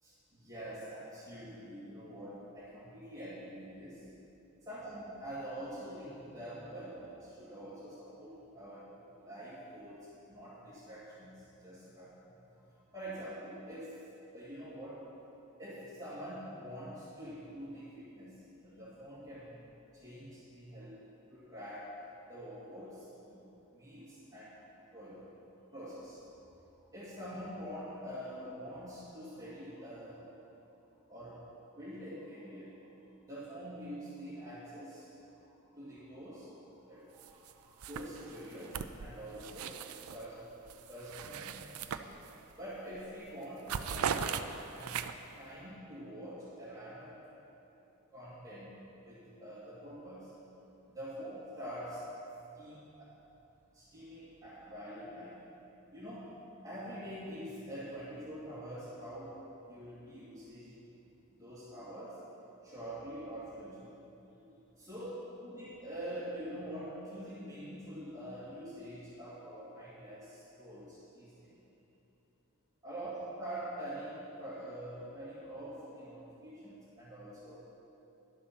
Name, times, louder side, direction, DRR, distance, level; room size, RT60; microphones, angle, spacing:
voice 1, 0.0-4.1 4.7-8.9 9.2-12.1 12.5-14.0 14.3-15.1 15.6-19.6 19.9-21.0 21.3-21.9 22.3-24.6 24.9-25.3 25.7-26.2 26.7-30.3 31.1-31.4 31.8-32.8 33.2-35.1 35.4-42.0 42.5-45.0 45.4-47.2 48.1-50.3 50.9-53.2 53.7-55.4 55.9-56.4 56.6-60.9 61.3-62.2 62.6-63.9 64.3-65.1 65.4-71.6 72.8-73.1 73.4-77.6, equal, 15° right, -11 dB, 2.3 m, -46 dB
sound 1, 37.2-37.5 37.8-40.3 40.7-42.6 42.9-43.1 43.4-45.4, right 7 dB, 85° right, 0.5 m, -39 dB
11.5 x 7.2 x 6.0 m, 2.9 s
head